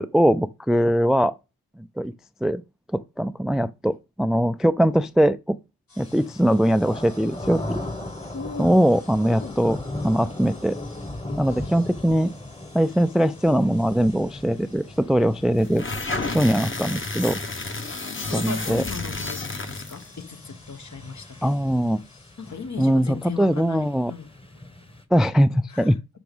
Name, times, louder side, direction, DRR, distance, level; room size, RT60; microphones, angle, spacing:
voice 1, 0.0-1.3 2.0-2.1 2.4-2.6 2.9-5.6 6.0-7.8 8.6-9.8 10.0-10.8 11.4-12.3 12.7-15.8 16.3-17.4 18.3-18.8 21.4-22.0 22.8-24.1 25.1-26.0, equal, ahead, 0.3 m, -21 dB
sound 1, 5.9-25.0, left 3 dB, 70° left, 2.6 m, -53 dB
sound 2, 6.0-25.0, left 1 dB, 15° left, 1.4 m, -38 dB
voice 2, 8.2-8.8 9.3-9.6 17.7-17.8 18.1-21.6 22.4-24.3 25.7-25.9, left 5 dB, 50° left, 1.3 m, -37 dB
sound 3, 15.6-20.1, left 3 dB, 35° left, 1.5 m, -31 dB
6.2 x 5.9 x 5.3 m
cardioid pair, 60°, 36 cm